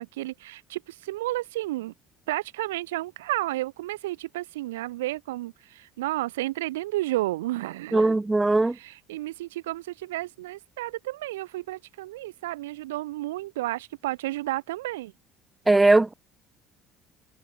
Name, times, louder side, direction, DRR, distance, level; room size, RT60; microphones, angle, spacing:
voice 1, 0.0-1.9 2.3-8.2 8.7-15.1, right 17 dB, 70° right, 2.8 m, -32 dB
voice 2, 7.9-8.8 15.7-16.1, right 2 dB, 15° right, 0.8 m, -19 dB
figure-of-eight pair, 55°, 0 cm